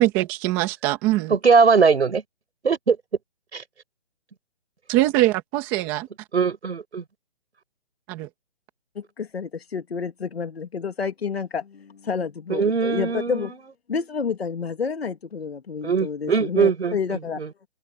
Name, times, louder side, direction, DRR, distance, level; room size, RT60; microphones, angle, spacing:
voice 1, 0.0-1.3 4.9-6.1 8.1-8.3, right 17 dB, 10° right, 1.8 m, -22 dB
voice 2, 1.3-2.2 2.6-3.0 3.5-3.6 6.3-7.0 12.5-13.5 15.8-17.0 17.4-17.5, right 5 dB, 80° right, 5.3 m, -20 dB
voice 3, 9.0-13.5 13.9-17.4, left 6 dB, 65° left, 2.5 m, -29 dB
open air
hypercardioid pair, 175°, 33 cm